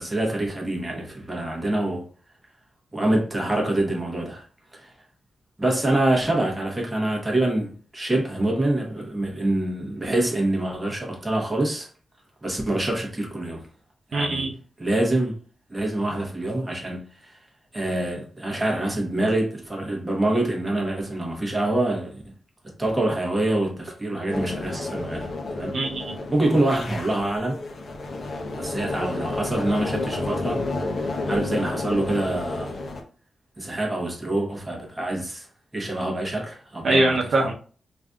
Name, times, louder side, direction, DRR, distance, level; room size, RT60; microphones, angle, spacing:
voice 1, 0.0-2.1 2.9-4.4 4.7-4.9 5.6-11.9 12.4-13.7 14.1-15.3 15.7-17.4 17.7-22.2 22.8-25.8 26.3-27.6 28.5-32.8 33.6-35.5 35.7-37.5, right 1 dB, 10° right, 1.0 m, -26 dB
voice 2, 14.1-14.5 25.7-26.2 36.8-37.5, right 2 dB, 60° right, 0.7 m, -22 dB
sound 1, 24.3-33.0, left 2 dB, 45° left, 0.7 m, -31 dB
4.9 x 2.6 x 2.3 m
wide cardioid pair, 145°, 0 cm